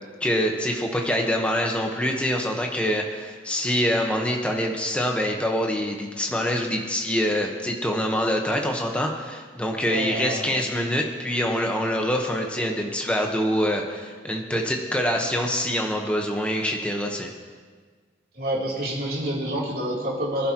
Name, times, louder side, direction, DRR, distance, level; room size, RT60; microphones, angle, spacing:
voice 1, 0.2-17.3, equal, 5° left, 1 dB, 1.2 m, -25 dB
voice 2, 9.8-10.5 18.3-20.5, right 1 dB, 55° right, -6 dB, 3.5 m, -28 dB
23.5 x 11.0 x 3.0 m, 1.5 s
head